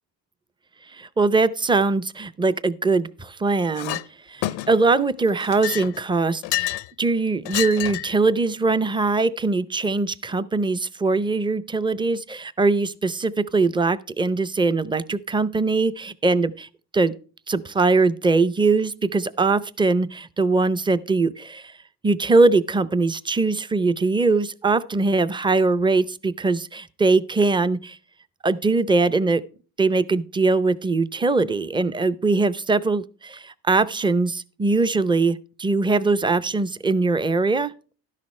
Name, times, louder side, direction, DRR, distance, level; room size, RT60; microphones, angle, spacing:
voice 1, 0.9-4.0 4.3-16.7 16.9-17.1 17.5-21.7 22.0-28.0 28.4-29.4 29.8-37.7, right 3 dB, 10° right, 0.6 m, -21 dB
Chink clink, 3.8-4.1 4.4-4.9 5.4-6.9 7.5-8.2, left 18 dB, 85° left, 0.7 m, -28 dB
12.5 x 10.5 x 3.2 m
cardioid pair, 110°, 42 cm